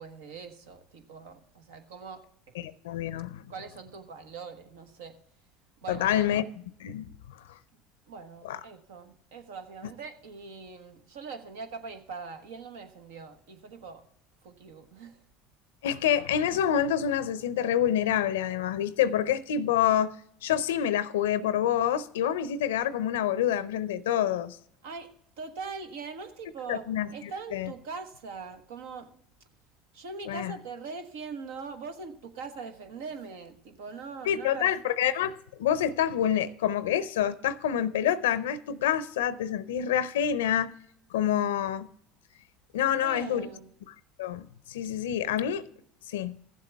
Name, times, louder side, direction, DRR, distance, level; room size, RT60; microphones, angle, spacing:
voice 1, 0.0-2.3 3.5-5.1 5.8-6.4 8.1-14.0 14.4-15.2 24.8-25.1 25.4-26.9 27.1-29.1 29.9-34.7 43.0-43.7, right 4 dB, 80° right, 1.2 m, -42 dB
voice 2, 2.6-3.4 5.9-6.5 6.8-7.1 8.4-8.6 15.8-20.1 20.4-24.6 26.7-27.7 30.3-30.5 34.3-40.7 41.1-41.9 42.7-43.5 44.2-45.6 46.1-46.3, left 10 dB, 85° left, 0.5 m, -27 dB
14.5 x 7.6 x 3.4 m
hypercardioid pair, 90°, 0 cm